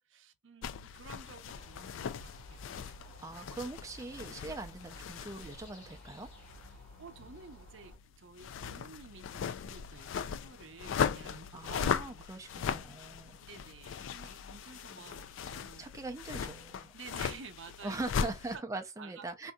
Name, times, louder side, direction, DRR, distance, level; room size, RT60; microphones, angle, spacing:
voice 1, 0.0-3.0 6.7-11.6 12.1-12.2 12.7-12.8 13.4-16.0 16.9-18.6 19.0-19.5, right 5 dB, 75° right, 0.6 m, -52 dB
sound 1, 0.6-18.6, left 7 dB, 80° left, 0.3 m, -39 dB
sound 2, 1.6-8.0, equal, 35° left, 2.4 m, -54 dB
voice 2, 3.0-6.3 11.5-13.4 15.8-16.9 17.8-19.5, right 2 dB, 15° right, 0.4 m, -41 dB
3.7 x 2.6 x 2.2 m
head